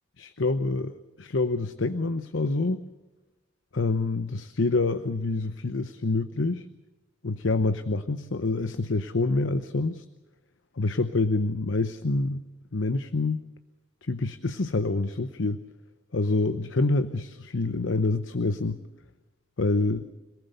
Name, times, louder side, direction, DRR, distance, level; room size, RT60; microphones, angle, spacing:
voice 1, 0.2-2.8 3.7-6.7 7.2-10.0 10.8-12.4 12.7-13.5 14.0-15.6 16.1-18.8 19.6-20.0, left 3 dB, 85° left, 11 dB, 0.9 m, -27 dB
26.5 x 18.5 x 6.8 m, 1.1 s
head